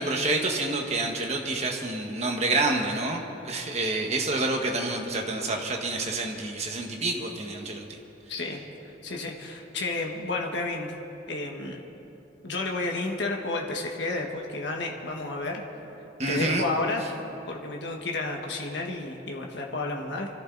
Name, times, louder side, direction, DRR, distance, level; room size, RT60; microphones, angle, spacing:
voice 1, 0.0-8.0 16.2-16.6, right 2 dB, 35° right, 1 dB, 1.5 m, -28 dB
voice 2, 8.3-8.6 9.0-10.9 11.3-11.8 12.4-15.6 16.3-17.1 17.5-20.3, left 2 dB, 65° left, 1 dB, 1.4 m, -31 dB
24.5 x 14.0 x 4.0 m, 2.9 s
head